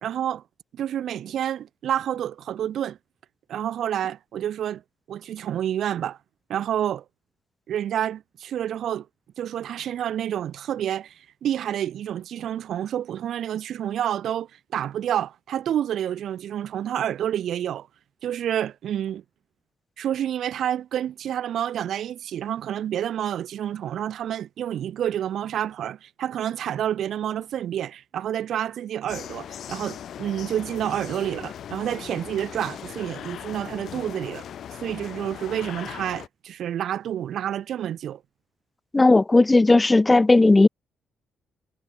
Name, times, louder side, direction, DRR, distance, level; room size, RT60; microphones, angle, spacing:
voice 1, 0.0-0.4 0.7-3.0 3.5-4.8 5.1-6.2 6.5-7.0 7.7-9.1 9.4-17.9 18.2-19.2 20.0-34.4 34.8-38.2, right 10 dB, 70° right, 2.6 m, -29 dB
sound 1, 29.1-36.3, left 9 dB, 65° left, 5.7 m, -39 dB
voice 2, 38.9-40.7, left 2 dB, 25° left, 0.6 m, -16 dB
supercardioid pair, 55°, 0 cm